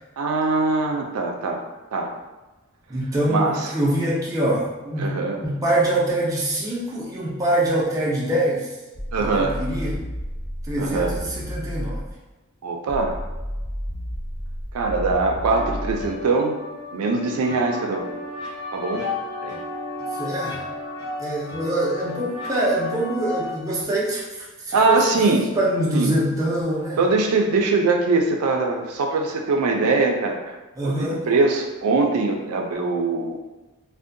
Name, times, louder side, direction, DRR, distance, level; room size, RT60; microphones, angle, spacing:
voice 1, 0.2-1.6 1.9-2.1 3.3-3.5 5.0-5.4 9.1-9.6 10.8-11.2 12.6-13.2 14.7-16.6 16.9-18.1 18.7-19.0 19.4-19.5 24.7-25.5 25.9-26.2 27.0-30.4 30.8-33.3, right 3 dB, 90° right, 2 dB, 0.4 m, -22 dB
voice 2, 2.9-8.8 9.2-10.0 10.6-12.1 20.1-20.6 21.2-25.2 25.6-27.1 30.8-31.3, right 1 dB, 15° right, -5 dB, 0.4 m, -24 dB
sound 1, 9.0-12.2 12.9-16.2, equal, 25° left, 0.7 m, -32 dB
sound 2, 15.5-23.5, left 2 dB, 70° left, 1.0 m, -33 dB
2.6 x 2.1 x 2.5 m, 1.1 s
head